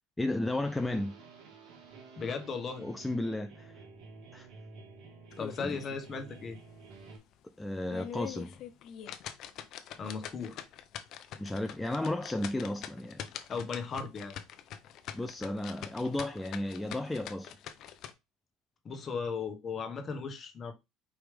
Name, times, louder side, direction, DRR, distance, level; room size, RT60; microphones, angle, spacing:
voice 1, 0.2-1.2 2.8-3.8 4.3-4.5 5.6-5.8 7.6-8.5 11.4-13.3 15.1-17.6, left 1 dB, 10° left, 0.4 m, -33 dB
sound 1, 0.6-7.2, right 4 dB, 65° right, 2.1 m, -51 dB
voice 2, 2.2-2.8 5.4-6.6 10.0-10.6 13.5-14.3 18.8-20.7, left 5 dB, 35° left, 1.2 m, -36 dB
sound 2, 5.3-6.1 6.4-6.5 7.0-7.1 7.7-18.1, left 9 dB, 55° left, 0.6 m, -44 dB
4.8 x 3.0 x 3.3 m
supercardioid pair, 115°, 0 cm